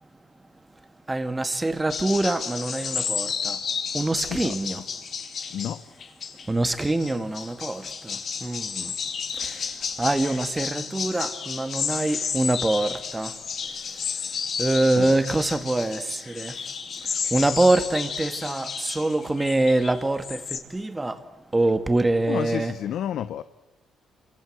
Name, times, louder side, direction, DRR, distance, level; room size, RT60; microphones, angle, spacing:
voice 1, 1.1-4.8 6.5-9.0 9.3-16.7 17.0-22.7, right 2 dB, 15° right, 2.3 m, -25 dB
sound 1, 1.9-20.6, left 6 dB, 55° left, 3.1 m, -32 dB
voice 2, 5.5-5.8 15.0-15.2 22.3-23.4, left 10 dB, 75° left, 0.9 m, -30 dB
28.0 x 25.0 x 8.1 m
cardioid pair, 90°, 0 cm